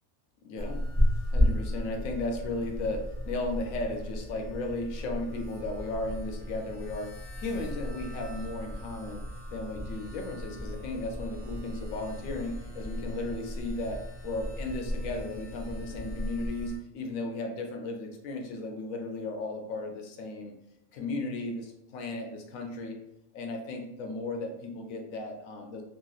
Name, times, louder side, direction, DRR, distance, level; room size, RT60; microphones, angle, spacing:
voice 1, 0.4-0.8 1.3-7.1 7.4-9.2 9.5-20.5 20.9-23.0 23.3-25.8, left 2 dB, 80° left, 2 dB, 1.0 m, -35 dB
sound 1, 0.6-16.8, equal, 25° right, 0.6 m, -34 dB
2.9 x 2.8 x 2.3 m, 0.86 s
omnidirectional pair, 1.4 m